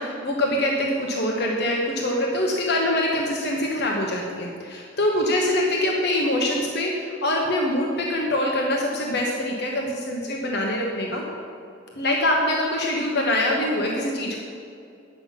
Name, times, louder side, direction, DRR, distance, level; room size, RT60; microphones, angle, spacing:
voice 1, 0.0-11.2 11.9-14.4, left 1 dB, 55° left, -1 dB, 1.2 m, -24 dB
10.0 x 7.9 x 5.7 m, 2.5 s
head